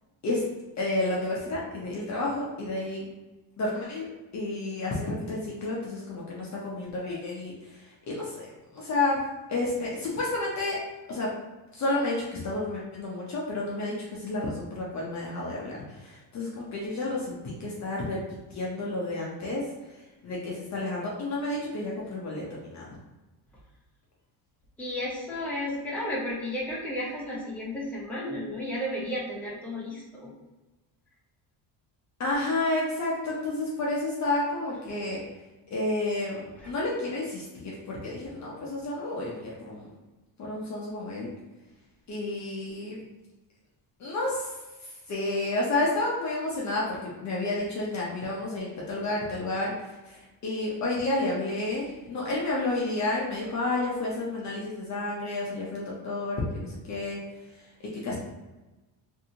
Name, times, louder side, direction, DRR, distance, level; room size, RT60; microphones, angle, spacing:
voice 1, 0.8-3.1 3.6-4.1 4.3-8.4 8.7-9.2 9.5-10.8 11.1-11.3 11.7-23.0 32.2-35.2 35.7-39.8 40.4-41.3 42.1-43.0 44.0-44.6 44.8-57.2 57.5-57.7 58.0-58.1, left 2 dB, 40° left, -4 dB, 0.6 m, -31 dB
voice 2, 24.8-30.3 36.6-36.7, left 1 dB, 5° left, -6 dB, 0.7 m, -33 dB
2.7 x 2.6 x 2.7 m, 1.1 s
cardioid pair, 135°, 46 cm